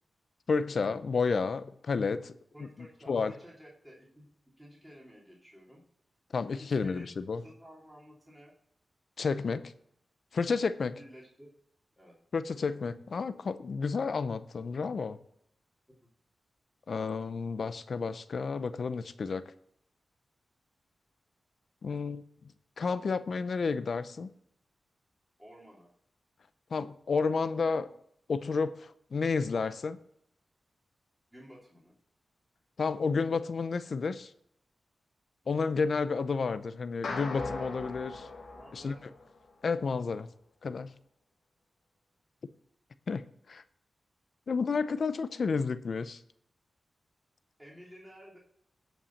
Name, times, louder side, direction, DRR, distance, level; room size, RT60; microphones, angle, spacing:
voice 1, 0.5-2.3 3.1-3.3 6.3-7.4 9.2-9.7 10.3-11.0 12.3-15.2 16.9-19.4 21.8-22.2 22.8-24.3 26.7-27.9 28.3-30.0 32.8-34.3 35.5-38.3 38.7-38.9 39.6-40.3 40.6-40.9 43.1-43.2 43.5-43.6 44.5-46.2, left 4 dB, 60° left, 13 dB, 0.6 m, -31 dB
voice 2, 2.5-5.8 6.6-8.5 11.0-11.5 12.0-12.2 25.4-25.9 31.3-31.9 38.5-39.0 47.6-48.4, equal, 5° right, -4 dB, 3.0 m, -53 dB
sound 1, 37.0-39.5, left 3 dB, 90° left, 2.2 m, -39 dB
9.9 x 5.5 x 7.2 m, 0.72 s
wide cardioid pair, 105°, 0 cm